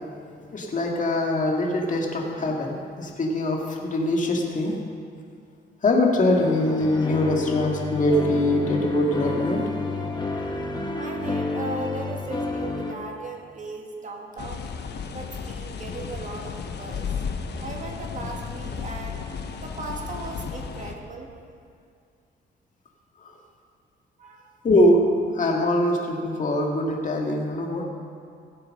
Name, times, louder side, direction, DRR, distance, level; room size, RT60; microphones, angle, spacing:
voice 1, 0.5-4.8 5.8-9.6 23.2-23.3 24.6-25.0 25.3-27.9, left 1 dB, 40° left, 0 dB, 2.1 m, -23 dB
sound 1, 6.3-12.9, left 3 dB, 20° left, 1.5 m, -30 dB
voice 2, 10.9-14.6 15.1-17.2 17.6-19.2 19.6-21.3 24.2-24.5, right 3 dB, 40° right, 1 dB, 2.0 m, -37 dB
sound 2, 14.4-20.9, left 6 dB, 55° left, 1.0 m, -34 dB
16.5 x 7.7 x 5.4 m, 2.3 s
cardioid pair, 90°, 20 cm